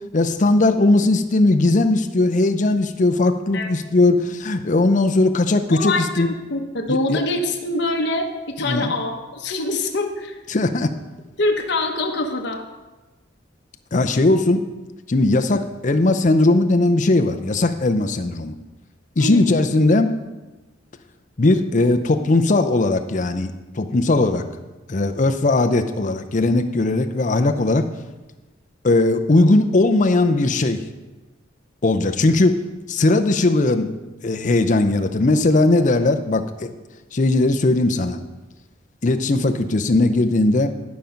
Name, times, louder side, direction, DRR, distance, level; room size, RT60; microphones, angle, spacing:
voice 1, 0.1-6.3 7.1-7.2 8.6-8.9 10.5-10.9 13.9-14.6 15.1-18.6 19.2-20.2 21.4-23.5 23.8-24.4 24.9-27.9 28.8-30.8 31.8-34.0 34.2-36.7 37.1-38.2 39.0-40.7, left 2 dB, 40° left, 7 dB, 0.6 m, -18 dB
voice 2, 5.7-10.4 11.4-12.6 19.2-19.5, left 2 dB, 60° left, 2 dB, 1.0 m, -24 dB
11.5 x 5.2 x 5.7 m, 1.2 s
head